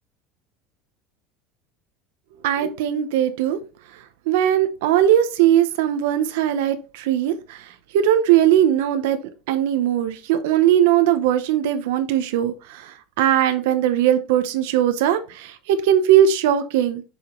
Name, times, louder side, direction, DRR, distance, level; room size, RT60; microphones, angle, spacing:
voice 1, 2.4-3.6 4.3-9.2 9.5-17.0, right 10 dB, 75° right, 0.8 m, -19 dB
6.4 x 5.0 x 3.0 m
cardioid pair, 175°, 0 cm